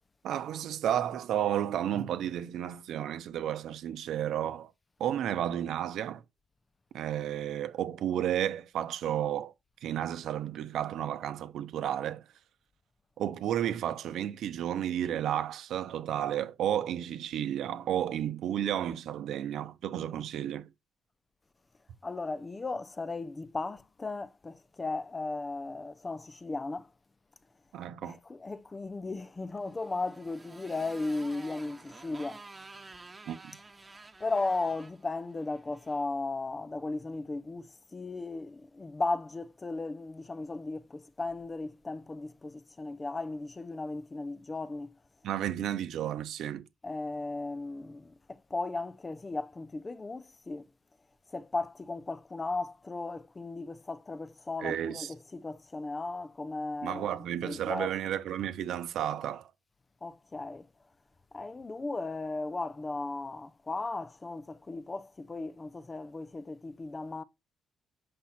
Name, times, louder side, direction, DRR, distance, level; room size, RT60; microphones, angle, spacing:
voice 1, 0.2-4.7 5.0-6.2 6.9-9.5 9.8-12.2 13.2-20.7 27.7-28.2 33.3-33.6 45.2-46.7 54.6-55.1 56.8-59.5, right 10 dB, 75° right, 1.0 m, -32 dB
voice 2, 22.0-26.9 28.0-32.4 34.2-44.9 46.8-50.7 51.3-57.1 57.4-57.9 60.0-60.7 61.3-67.2, left 3 dB, 25° left, 0.8 m, -36 dB
Motorcycle, 29.6-36.0, right 3 dB, 25° right, 1.2 m, -51 dB
7.7 x 5.6 x 4.3 m
cardioid pair, 90°, 0 cm